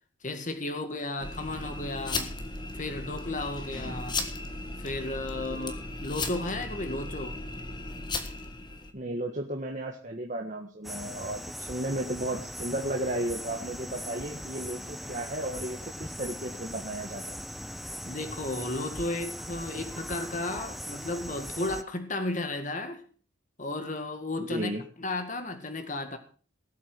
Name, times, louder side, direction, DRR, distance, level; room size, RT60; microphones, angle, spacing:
voice 1, 0.2-2.4 2.7-4.2 4.8-7.4 18.0-23.0 23.6-26.2, left 2 dB, 35° left, 2.0 m, -34 dB
sound 1, 1.2-8.9, left 2 dB, 20° left, 1.6 m, -36 dB
voice 2, 5.3-5.8 8.9-17.4 24.4-24.8, right 1 dB, 35° right, 1.6 m, -34 dB
sound 2, 10.8-21.8, equal, ahead, 0.6 m, -40 dB
19.0 x 8.5 x 6.2 m
head